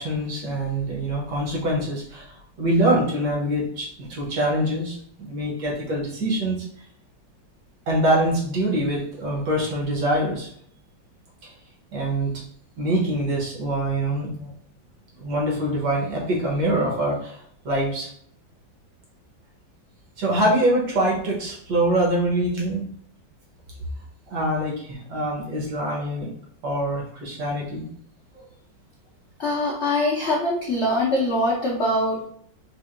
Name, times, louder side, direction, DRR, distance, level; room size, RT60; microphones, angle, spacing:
voice 1, 0.0-6.6 7.9-10.5 11.9-12.4 12.8-14.5 15.1-17.4 17.6-18.1 20.2-22.9 24.3-26.3 26.6-27.9, right 1 dB, 65° right, -3 dB, 1.6 m, -24 dB
voice 2, 29.4-32.2, left 1 dB, 65° left, -4 dB, 0.6 m, -23 dB
4.5 x 2.5 x 2.5 m, 0.64 s
omnidirectional pair, 2.1 m